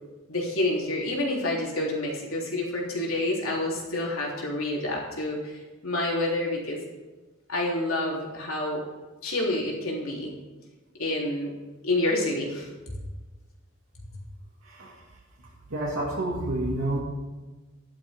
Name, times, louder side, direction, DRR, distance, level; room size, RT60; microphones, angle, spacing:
voice 1, 0.3-6.8 7.5-8.8 9.2-10.3 11.0-11.5 11.8-12.9, left 1 dB, 85° left, -3 dB, 3.5 m, -28 dB
voice 2, 14.6-15.0 15.7-17.0, right 1 dB, 80° right, -6 dB, 2.4 m, -29 dB
13.5 x 11.5 x 3.7 m, 1.2 s
head